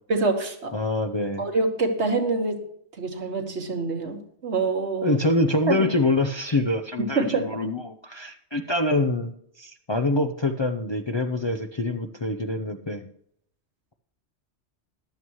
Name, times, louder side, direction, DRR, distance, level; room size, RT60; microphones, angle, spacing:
voice 1, 0.1-0.7 1.4-2.6 3.0-5.2 5.7-5.8 7.2-7.5, right 3 dB, 75° right, 5 dB, 1.8 m, -25 dB
voice 2, 0.7-1.5 5.0-13.1, left 2 dB, 35° left, 7 dB, 0.5 m, -25 dB
14.5 x 11.0 x 3.1 m, 0.69 s
omnidirectional pair, 1.2 m